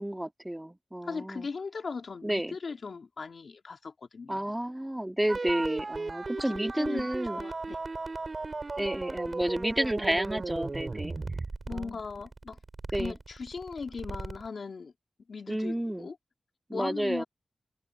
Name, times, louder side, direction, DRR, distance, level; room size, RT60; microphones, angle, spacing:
voice 1, 0.0-1.5 2.2-2.6 4.3-7.4 8.8-11.2 11.7-12.0 12.9-13.2 15.5-16.1 16.7-17.2, right 1 dB, 10° right, 2.1 m, -31 dB
voice 2, 1.0-4.5 6.4-7.0 7.3-7.8 11.7-12.6 13.0-14.9 15.3-16.2 16.7-17.2, left 4 dB, 65° left, 2.6 m, -38 dB
sound 1, 5.3-14.5, right 3 dB, 45° right, 6.8 m, -36 dB
cardioid pair, 65°, 0 cm